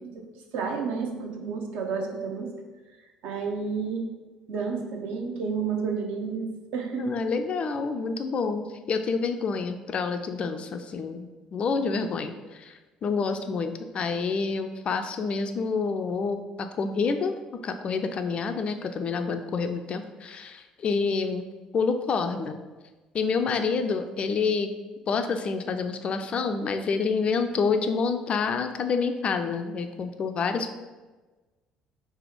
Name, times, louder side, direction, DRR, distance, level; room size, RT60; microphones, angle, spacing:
voice 1, 0.5-2.5 3.2-4.1 4.5-7.2, right 5 dB, 55° right, 2 dB, 0.6 m, -31 dB
voice 2, 7.0-12.7 13.0-21.5 21.7-22.6 23.1-24.7 25.1-30.7, left 5 dB, 40° left, 7 dB, 0.3 m, -28 dB
3.4 x 3.4 x 4.5 m, 1.2 s
figure-of-eight pair, 55°, 3 cm